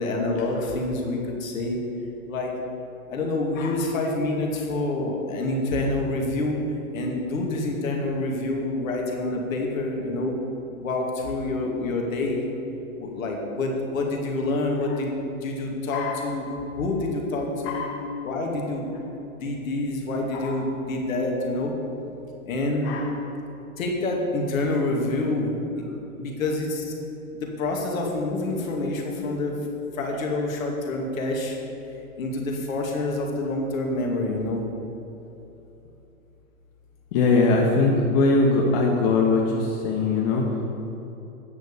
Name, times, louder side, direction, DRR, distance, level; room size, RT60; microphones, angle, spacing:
voice 1, 0.0-1.8 2.3-2.5 3.1-6.6 6.9-10.3 10.8-12.5 13.0-15.1 15.4-16.5 16.7-17.8 18.2-18.9 19.4-21.7 22.5-23.0 23.8-26.8 27.3-29.5 29.9-31.6 32.2-34.6, left 2 dB, 70° left, 0 dB, 2.4 m, -27 dB
voice 2, 17.6-18.0 20.3-20.6 22.8-23.1 37.1-40.4, left 3 dB, 45° left, -1 dB, 1.3 m, -21 dB
9.4 x 6.4 x 7.0 m, 3.0 s
hypercardioid pair, 130°, 42 cm